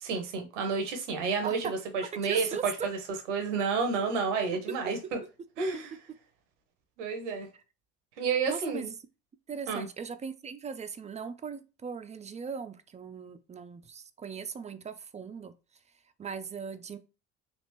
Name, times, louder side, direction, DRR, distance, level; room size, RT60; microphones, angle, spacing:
voice 1, 0.0-3.0 3.3-5.2 5.6-5.9 7.0-7.5 8.2-8.9 9.7-9.9, right 5 dB, 85° right, 0.8 m, -30 dB
voice 2, 2.3-2.9 5.0-5.1 5.7-5.8 8.5-9.0 9.5-15.5 16.2-17.0, right 6 dB, 20° right, 0.4 m, -38 dB
3.4 x 2.5 x 2.9 m
hypercardioid pair, 65°, 36 cm